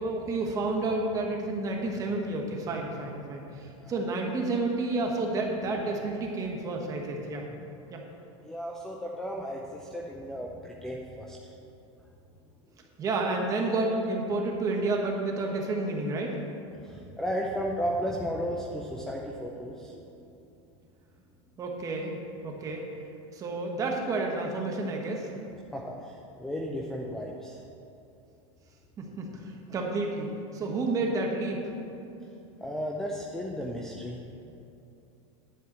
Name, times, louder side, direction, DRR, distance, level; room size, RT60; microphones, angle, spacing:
voice 1, 0.0-7.5 7.9-8.0 13.0-16.3 21.6-22.8 23.3-25.3 29.0-29.3 29.7-31.6, right 2 dB, 20° right, 1 dB, 1.2 m, -30 dB
voice 2, 8.4-11.4 16.8-20.2 25.7-27.6 32.6-34.2, equal, 5° left, -1 dB, 0.5 m, -34 dB
10.0 x 4.6 x 7.8 m, 2.8 s
supercardioid pair, 155°, 16 cm